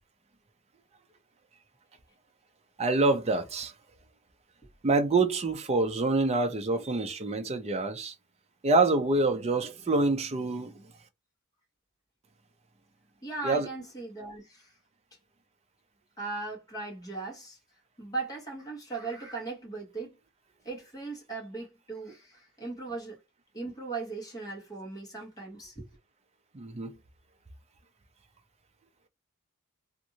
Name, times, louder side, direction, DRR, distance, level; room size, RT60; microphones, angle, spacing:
voice 1, 2.8-3.7 4.8-8.1 8.6-10.8 13.4-13.7 26.5-27.0, right 3 dB, 30° right, 0.5 m, -26 dB
voice 2, 13.2-14.7 16.2-17.6 18.0-20.2 20.6-23.2 23.5-25.9, right 3 dB, 15° left, 1.2 m, -38 dB
2.6 x 2.5 x 2.8 m
head